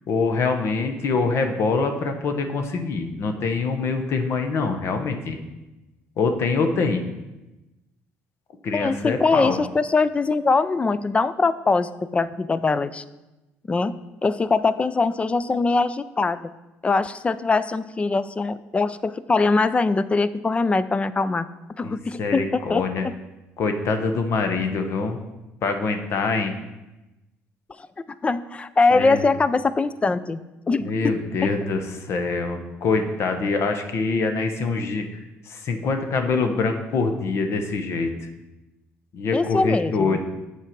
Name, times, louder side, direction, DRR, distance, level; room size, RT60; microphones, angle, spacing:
voice 1, 0.0-5.4 6.2-7.0 8.6-9.6 21.8-23.1 23.6-25.2 25.6-26.6 28.9-29.3 30.8-35.2 35.4-38.1 39.1-40.2, left 4 dB, 60° left, 6 dB, 0.9 m, -24 dB
voice 2, 8.7-13.0 13.7-14.0 14.2-16.5 16.8-21.5 21.8-23.1 27.8-27.9 28.2-30.9 39.3-40.2, left 3 dB, 25° left, 15 dB, 0.4 m, -22 dB
7.4 x 4.7 x 5.2 m, 1.0 s
supercardioid pair, 80°, 5 cm